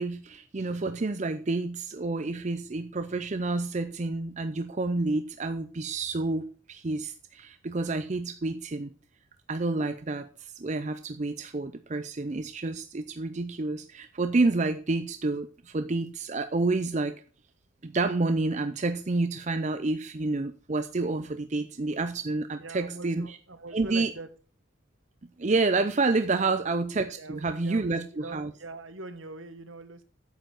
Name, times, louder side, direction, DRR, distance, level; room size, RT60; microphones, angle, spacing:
voice 1, 0.0-6.4 6.7-8.9 9.5-17.2 17.8-23.3 23.7-24.1 25.4-28.5, right 3 dB, 35° right, 10 dB, 0.5 m, -29 dB
voice 2, 22.6-24.3 26.3-26.6 27.2-30.0, right 2 dB, 70° right, 10 dB, 1.4 m, -43 dB
9.0 x 7.9 x 5.9 m, 0.38 s
head